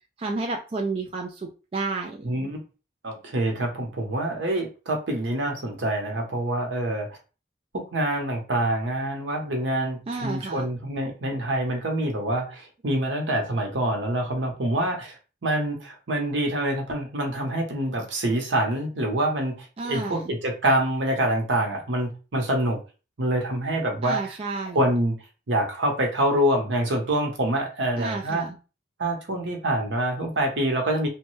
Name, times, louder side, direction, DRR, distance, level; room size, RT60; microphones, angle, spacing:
voice 1, 0.2-2.5 10.1-10.7 19.8-20.3 24.0-24.9 28.0-28.6, right 3 dB, 30° right, 2 dB, 0.3 m, -31 dB
voice 2, 2.2-2.6 3.0-7.1 7.7-15.2 15.4-22.8 23.2-24.2 24.7-25.2 25.5-28.4 29.0-31.1, right 1 dB, 75° right, 2 dB, 0.9 m, -26 dB
3.1 x 2.2 x 3.0 m, 0.33 s
head